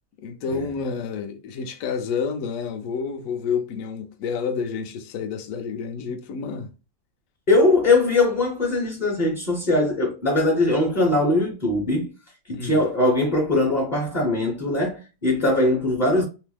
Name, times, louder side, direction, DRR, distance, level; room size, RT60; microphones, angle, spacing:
voice 1, 0.2-6.7 12.5-12.8, left 6 dB, 70° left, 0.8 m, -29 dB
voice 2, 7.5-12.1 12.5-16.2, left 2 dB, 40° left, 0.7 m, -21 dB
2.9 x 2.0 x 3.2 m
omnidirectional pair, 1.8 m